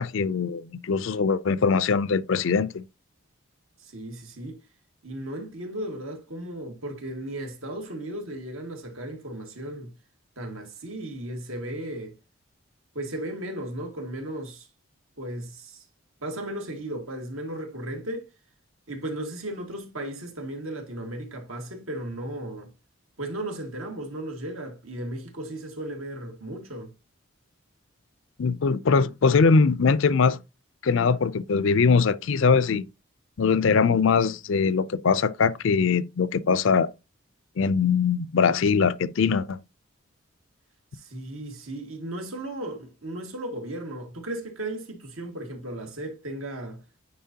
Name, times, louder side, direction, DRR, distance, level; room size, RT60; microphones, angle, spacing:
voice 1, 0.0-2.9 28.4-30.4 30.8-32.8 33.4-36.9 37.6-39.6, left 5 dB, 65° left, 0.4 m, -22 dB
voice 2, 3.8-4.6 5.0-9.9 10.4-12.1 12.9-14.7 15.2-15.8 16.2-18.3 18.9-22.7 23.2-26.9 40.9-46.8, right 1 dB, 75° right, 2.0 m, -35 dB
9.4 x 4.1 x 2.8 m
head